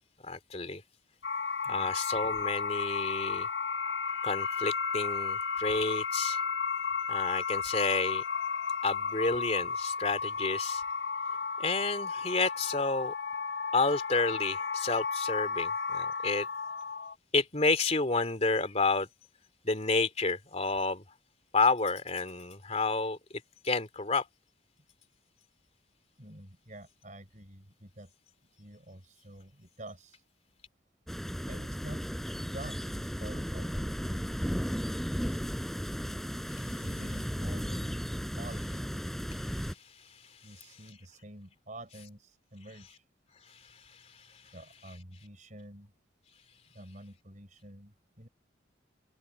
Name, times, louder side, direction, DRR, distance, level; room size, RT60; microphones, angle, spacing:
voice 1, 0.2-0.8 1.7-3.5 4.2-6.4 7.1-8.2 8.8-10.8 11.6-13.1 13.7-16.5 17.3-19.1 19.6-21.0 21.5-24.3 36.5-36.6 39.7-39.8 40.1-40.2 43.5-44.5, left 3 dB, 35° left, 2.9 m, -30 dB
sound 1, 1.2-17.1, left 5 dB, 75° left, 1.1 m, -33 dB
voice 2, 26.2-28.1 28.6-30.2 31.5-32.0 32.5-34.6 35.2-35.5 36.8-38.1 38.4-39.2 40.4-43.0 44.5-45.9 46.7-48.3, right 1 dB, 40° right, 4.7 m, -48 dB
sound 2, 31.1-39.7, equal, ahead, 4.9 m, -35 dB
head